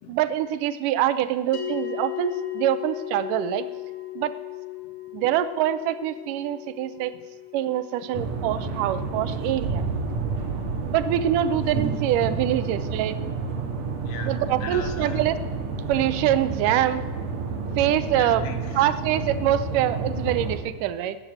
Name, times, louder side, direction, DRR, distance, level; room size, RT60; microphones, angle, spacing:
voice 1, 0.1-3.7 4.2-4.3 5.1-7.1 7.5-9.8 10.8-13.2 14.2-15.4 15.9-17.0 17.8-18.4 18.8-21.2, right 11 dB, 90° right, 13 dB, 2.3 m, -24 dB
sound 1, 1.5-12.1, left 16 dB, 60° left, 3.0 m, -38 dB
sound 2, 8.1-20.6, right 4 dB, 60° right, 2.8 m, -30 dB
voice 2, 10.2-10.6 13.8-14.3 14.6-15.2 18.1-18.9, left 7 dB, 90° left, 6 dB, 3.1 m, -40 dB
13.0 x 9.1 x 9.3 m, 1.4 s
omnidirectional pair, 3.7 m